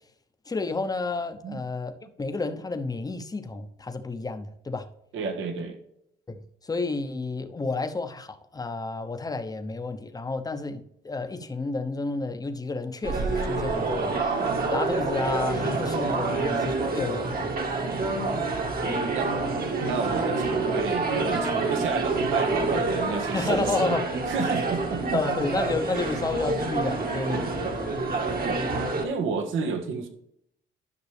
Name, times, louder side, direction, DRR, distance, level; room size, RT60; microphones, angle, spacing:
voice 1, 0.5-4.9 6.3-14.3 14.7-17.5 23.3-24.0 25.1-28.0, left 3 dB, 20° left, 0.9 m, -31 dB
voice 2, 5.1-5.8 18.8-19.3 19.9-24.0 24.3-25.2 28.4-28.6 29.0-30.1, right 5 dB, 80° right, 1.5 m, -31 dB
sound 1, 13.0-29.1, right 3 dB, 50° right, 1.6 m, -27 dB
11.0 x 6.0 x 3.4 m
cardioid pair, 90°, 20 cm